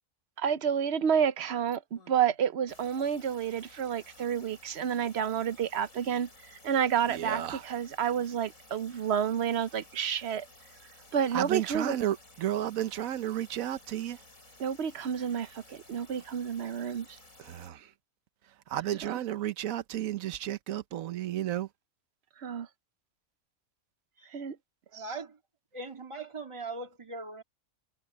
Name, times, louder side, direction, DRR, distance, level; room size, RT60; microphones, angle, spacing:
voice 1, 0.4-6.3 6.6-10.5 11.1-12.0 14.6-17.2 18.9-19.2 22.4-22.7 24.3-24.6 24.9-25.0, right 8 dB, 60° right, 0.9 m, -30 dB
sound 1, 1.7-2.4 2.7-17.7, left 2 dB, 75° left, 7.1 m, -56 dB
voice 2, 7.2-7.6 11.3-14.2 17.5-17.8 18.7-21.7, right 11 dB, 85° right, 1.2 m, -32 dB
voice 3, 24.9-25.4 25.7-27.4, right 3 dB, 20° right, 1.9 m, -40 dB
omnidirectional pair, 1.4 m